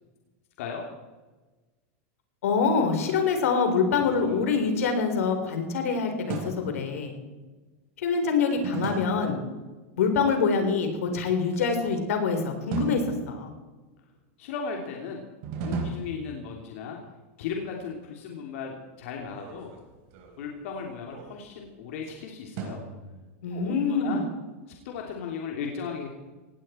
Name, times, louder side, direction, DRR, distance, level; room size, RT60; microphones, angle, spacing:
voice 1, 2.4-7.1 8.0-9.4 10.0-13.5 23.4-24.2, left 5 dB, 90° left, 5 dB, 4.1 m, -25 dB
sound 1, 3.9-5.7 6.3-6.9 8.6-9.4 11.4-12.2 12.7-13.8 15.4-16.8 19.2-21.7 22.6-23.5, right 4 dB, 50° right, 4.3 m, -37 dB
voice 2, 14.4-15.2 15.6-17.0 17.4-19.7 20.4-22.8 23.5-24.2 24.8-26.1, left 6 dB, 70° left, 1 dB, 3.0 m, -36 dB
18.5 x 16.5 x 4.5 m, 1.2 s
supercardioid pair, 150°, 8 cm